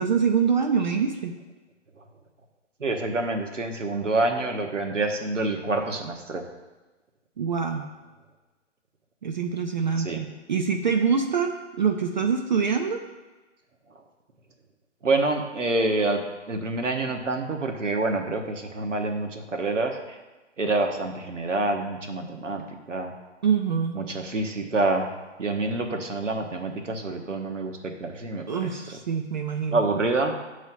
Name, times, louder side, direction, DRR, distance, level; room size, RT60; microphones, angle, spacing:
voice 1, 0.0-1.3 7.4-7.9 9.2-13.0 23.4-24.0 28.5-29.8, right 6 dB, 40° right, 4 dB, 0.4 m, -25 dB
voice 2, 2.8-6.4 10.0-10.2 15.0-16.2 16.5-20.2 20.6-23.1 23.9-25.1 25.4-28.8 29.7-30.3, right 2 dB, 80° right, 3 dB, 1.0 m, -27 dB
7.0 x 3.2 x 5.4 m, 1.2 s
figure-of-eight pair, 130°, 37 cm